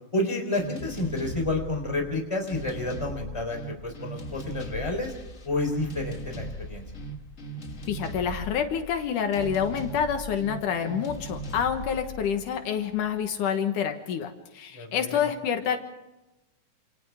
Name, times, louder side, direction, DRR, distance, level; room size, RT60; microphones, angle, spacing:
voice 1, 0.1-5.1 5.4-6.9 14.7-15.3, left 2 dB, 10° left, 2 dB, 3.8 m, -30 dB
sound 1, 0.5-13.3, right 1 dB, 35° left, 1.4 m, -39 dB
voice 2, 7.9-15.8, left 8 dB, 80° left, 6 dB, 2.9 m, -28 dB
28.0 x 28.0 x 3.6 m, 0.98 s
omnidirectional pair, 3.6 m